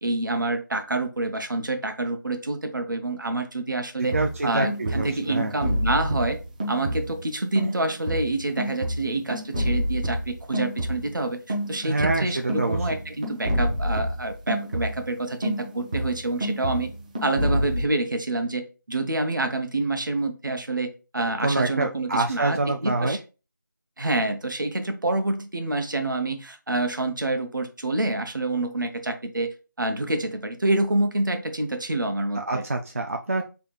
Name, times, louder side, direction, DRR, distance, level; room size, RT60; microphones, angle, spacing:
voice 1, 0.0-4.1 4.4-6.4 6.7-16.9 17.2-23.2 24.0-32.6, right 2 dB, 75° right, 6 dB, 1.0 m, -27 dB
voice 2, 4.0-5.5 11.8-12.8 21.4-23.2 32.4-33.4, right 2 dB, 45° right, 3 dB, 0.4 m, -26 dB
sound 1, 4.1-7.3 7.5-11.2 11.5-15.2 15.4-17.8, equal, 20° right, 0.7 m, -28 dB
4.1 x 3.3 x 3.1 m, 0.31 s
figure-of-eight pair, 170°, 11 cm